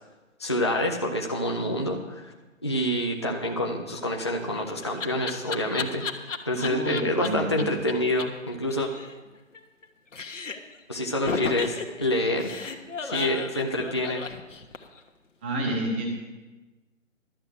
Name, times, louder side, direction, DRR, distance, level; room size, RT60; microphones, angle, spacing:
voice 1, 0.4-2.3 2.6-6.0 6.5-8.9 10.9-14.2, left 1 dB, 20° left, 1 dB, 0.5 m, -27 dB
Laughter, 4.2-7.3 7.6-7.7 7.9-8.0 8.2-8.3 8.5-9.9 10.1-10.8 11.3-15.0, left 4 dB, 65° left, 1.3 m, -33 dB
voice 2, 6.5-7.7 15.4-16.1, right 1 dB, 10° right, 0 dB, 0.8 m, -30 dB
12.0 x 7.8 x 7.4 m, 1.2 s
figure-of-eight pair, 150°, 40 cm